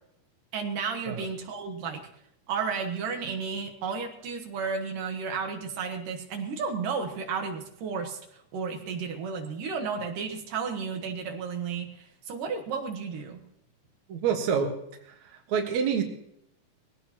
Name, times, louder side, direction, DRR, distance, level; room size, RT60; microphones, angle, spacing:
voice 1, 0.5-2.0 2.5-13.4, right 5 dB, 80° right, 3 dB, 3.0 m, -33 dB
voice 2, 14.1-14.8 15.1-16.0, right 7 dB, 65° right, 3 dB, 2.8 m, -27 dB
21.5 x 16.5 x 3.0 m, 0.75 s
omnidirectional pair, 3.8 m